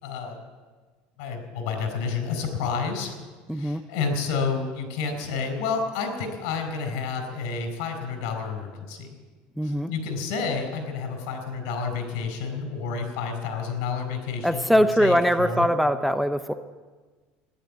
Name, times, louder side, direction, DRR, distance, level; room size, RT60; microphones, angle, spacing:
voice 1, 0.0-0.4 1.2-3.1 3.5-9.1 9.6-15.7, left 5 dB, 80° left, 6 dB, 4.3 m, -30 dB
voice 2, 3.5-3.8 9.6-9.9 14.4-16.5, equal, ahead, 10 dB, 0.5 m, -22 dB
14.0 x 11.0 x 9.2 m, 1.4 s
cardioid pair, 150°, 3 cm